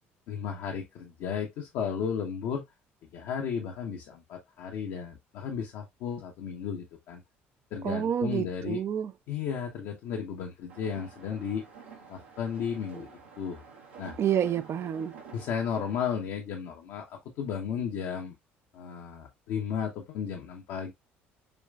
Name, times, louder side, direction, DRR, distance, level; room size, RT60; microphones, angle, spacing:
voice 1, 0.3-2.6 3.1-7.2 7.7-8.8 9.3-11.6 12.1-13.6 14.0-14.2 15.3-18.4 18.7-20.9, left 7 dB, 65° left, 0.8 m, -34 dB
voice 2, 7.8-9.1 14.2-15.1, right 9 dB, 45° right, 0.4 m, -28 dB
sound 1, 10.7-16.0, right 5 dB, 85° right, 1.1 m, -49 dB
6.7 x 3.2 x 2.3 m
hypercardioid pair, 55°, 6 cm